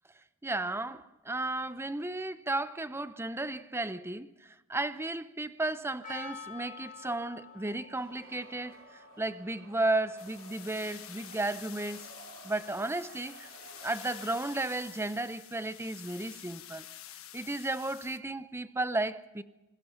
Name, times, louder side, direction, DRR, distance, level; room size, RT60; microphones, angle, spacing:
voice 1, 0.4-4.3 4.7-8.8 9.2-12.1 12.4-13.5 13.8-16.8 17.3-19.4, right 2 dB, 10° right, 0.7 m, -34 dB
Percussion, 6.0-11.3, left 4 dB, 40° left, 3.1 m, -49 dB
sound 1, 7.9-14.9, right 3 dB, 65° right, 3.4 m, -54 dB
sound 2, 10.2-18.2, left 12 dB, 75° left, 1.4 m, -49 dB
28.0 x 21.0 x 5.7 m
head